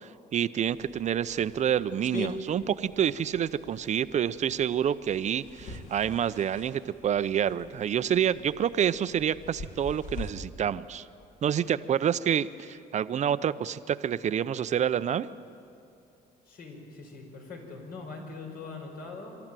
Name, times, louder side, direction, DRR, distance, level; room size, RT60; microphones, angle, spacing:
voice 1, 0.0-11.1 11.4-15.3, right 9 dB, 45° right, 14 dB, 0.6 m, -28 dB
sound 1, 0.7-10.3, left 2 dB, 45° left, 2.3 m, -44 dB
voice 2, 16.4-19.4, left 3 dB, 60° left, 2 dB, 5.3 m, -42 dB
26.5 x 14.0 x 9.1 m, 2.6 s
cardioid pair, 110°, 17 cm